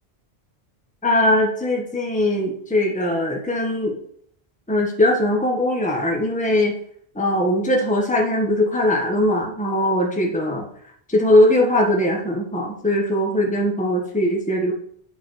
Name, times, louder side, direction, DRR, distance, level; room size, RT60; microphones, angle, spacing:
voice 1, 1.0-4.0 4.7-6.8 7.1-10.7 11.1-14.7, left 1 dB, 5° left, 0 dB, 1.3 m, -20 dB
9.0 x 4.7 x 6.3 m, 0.64 s
omnidirectional pair, 1.0 m